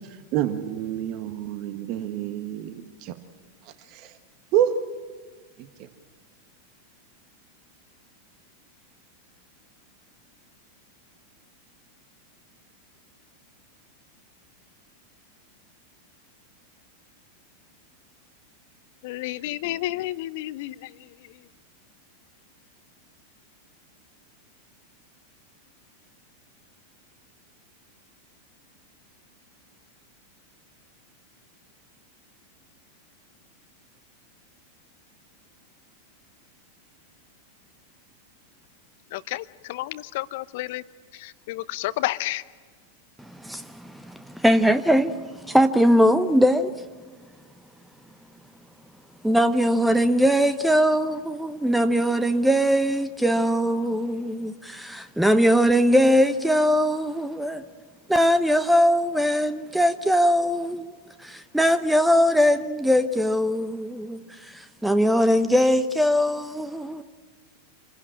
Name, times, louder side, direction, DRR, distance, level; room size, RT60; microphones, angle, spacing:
voice 1, 0.1-3.1 3.6-4.1 4.5-4.7 5.6-5.9, right 11 dB, 40° right, 1.5 m, -28 dB
voice 2, 19.0-21.5 39.1-40.8 41.1-42.4, left 16 dB, 50° left, 0.7 m, -31 dB
voice 3, 43.2-46.7 49.2-57.6 58.1-60.9 61.2-67.0, equal, 5° right, 0.9 m, -21 dB
27.5 x 16.5 x 8.8 m
figure-of-eight pair, 90°, 0 cm